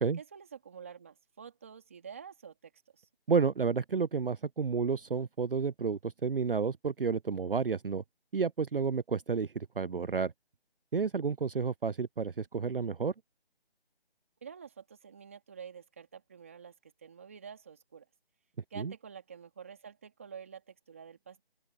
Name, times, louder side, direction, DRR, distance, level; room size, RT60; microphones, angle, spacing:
voice 1, 0.2-3.1 14.4-18.1 18.7-21.4, right 7 dB, 15° right, 2.6 m, -48 dB
voice 2, 3.3-8.0 8.3-10.3 10.9-13.1 18.8-18.9, right 5 dB, 60° right, 0.6 m, -31 dB
open air
figure-of-eight pair, 180°, 31 cm